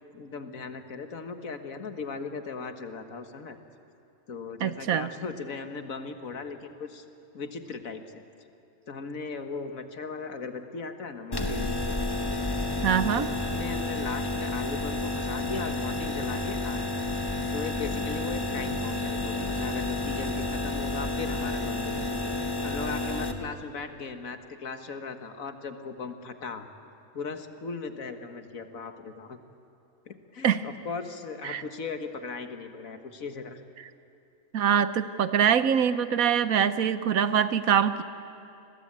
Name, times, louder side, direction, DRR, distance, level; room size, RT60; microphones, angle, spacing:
voice 1, 0.1-3.6 4.3-7.1 7.3-8.2 8.9-11.7 13.1-17.0 17.5-22.1 22.6-26.7 27.1-29.4 30.1-33.6, left 4 dB, 70° left, 7 dB, 1.9 m, -38 dB
voice 2, 4.6-5.1 12.8-13.3 30.4-30.6 31.4-31.6 33.8-33.9 34.5-38.0, right 8 dB, 80° right, 13 dB, 1.4 m, -24 dB
sound 1, 11.3-23.3, left 2 dB, 15° left, 1.5 m, -30 dB
29.5 x 21.5 x 8.8 m, 2.7 s
omnidirectional pair, 1.5 m